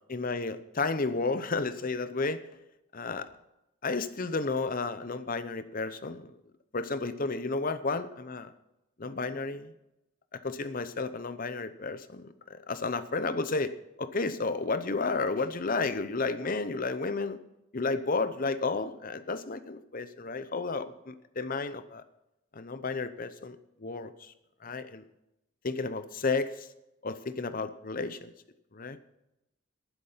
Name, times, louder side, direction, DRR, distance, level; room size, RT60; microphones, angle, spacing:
voice 1, 0.1-2.4 2.9-3.3 3.8-6.3 6.7-8.5 9.0-9.7 10.3-13.7 14.0-17.4 17.7-22.0 22.5-24.3 24.6-25.1 25.6-26.7 27.0-28.3 28.7-29.0, left 3 dB, 40° left, 12 dB, 0.8 m, -32 dB
11.5 x 10.5 x 5.7 m, 0.89 s
head